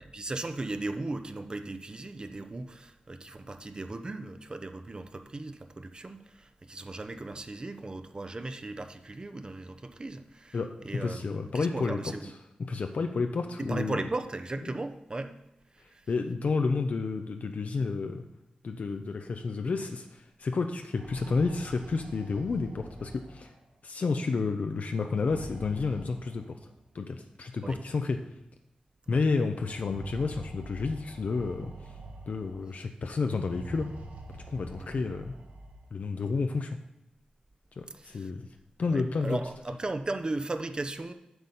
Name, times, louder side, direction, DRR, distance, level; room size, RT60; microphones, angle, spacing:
voice 1, 0.0-10.6 10.8-12.3 13.6-15.4 15.7-16.1 27.6-27.8 29.1-29.2 34.8-35.1 37.9-38.3 38.9-41.1, right 2 dB, 35° right, 8 dB, 0.7 m, -37 dB
voice 2, 10.5-12.2 12.6-14.0 15.8-18.2 18.6-23.5 23.8-26.6 26.9-28.2 29.1-31.7 32.3-33.9 34.5-35.4 35.9-36.8 37.8-38.5 38.8-39.4, left 4 dB, 65° left, 5 dB, 0.7 m, -30 dB
sound 1, 20.9-23.7 25.1-26.7 27.7-27.8 28.2-28.3 29.6-32.7 33.3-35.9, right 1 dB, 80° right, 1.6 m, -46 dB
8.0 x 6.7 x 5.6 m, 0.89 s
wide cardioid pair, 80°, 3 cm